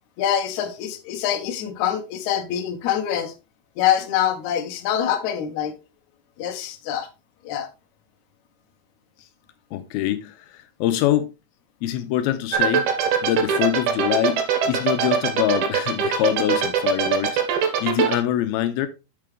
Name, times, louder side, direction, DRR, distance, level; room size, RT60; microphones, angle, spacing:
voice 1, 0.2-3.3 3.8-5.8 6.4-7.1 7.4-7.7, left 10 dB, 65° left, 2.1 m, -25 dB
voice 2, 9.7-11.3 11.8-18.9, left 13 dB, 85° left, 2.5 m, -25 dB
sound 1, 12.5-18.2, right 8 dB, 85° right, 3.4 m, -20 dB
8.7 x 6.8 x 3.4 m
omnidirectional pair, 4.4 m